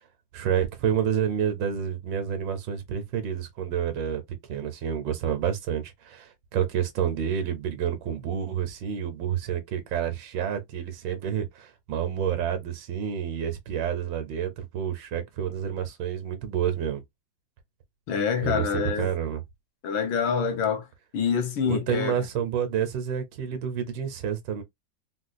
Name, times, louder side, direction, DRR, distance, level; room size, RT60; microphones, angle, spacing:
voice 1, 0.3-4.2 4.5-17.0 18.4-19.4 21.7-24.6, right 8 dB, 70° right, 1.3 m, -29 dB
voice 2, 18.1-19.1 19.8-20.9 21.1-22.1, left 6 dB, 75° left, 1.5 m, -26 dB
3.9 x 2.3 x 2.5 m
omnidirectional pair, 2.2 m